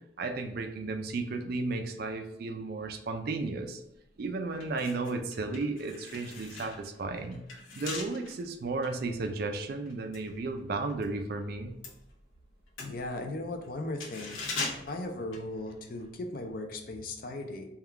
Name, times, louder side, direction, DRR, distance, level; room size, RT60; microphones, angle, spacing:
voice 1, 0.2-3.8 4.2-7.4 7.8-11.7, right 3 dB, 50° right, 5 dB, 0.4 m, -34 dB
sound 1, 3.9-4.1 4.5-11.1 11.4-16.1 16.4-16.5, left 4 dB, 85° left, 0.8 m, -42 dB
voice 2, 12.8-14.4 14.9-17.7, left 2 dB, 45° left, 4 dB, 0.5 m, -37 dB
3.6 x 2.3 x 4.4 m, 0.82 s
head